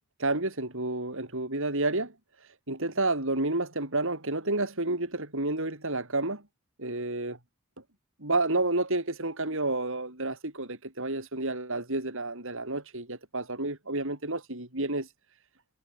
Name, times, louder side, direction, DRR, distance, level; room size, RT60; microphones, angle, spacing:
voice 1, 0.2-2.1 2.7-6.4 6.8-7.4 8.2-15.1, right 2 dB, 65° right, 7.4 m, -30 dB
head